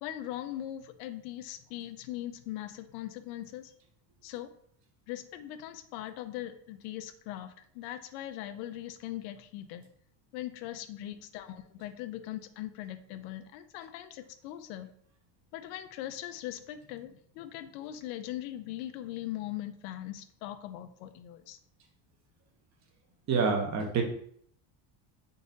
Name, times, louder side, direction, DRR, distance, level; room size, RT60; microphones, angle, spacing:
voice 1, 0.0-3.7 4.2-4.5 5.1-9.9 10.3-14.9 15.5-21.6, left 13 dB, 85° left, 9 dB, 0.6 m, -40 dB
voice 2, 23.3-24.0, right 5 dB, 35° right, 3 dB, 0.8 m, -27 dB
3.9 x 2.5 x 3.9 m, 0.64 s
cardioid pair, 140°, 50 cm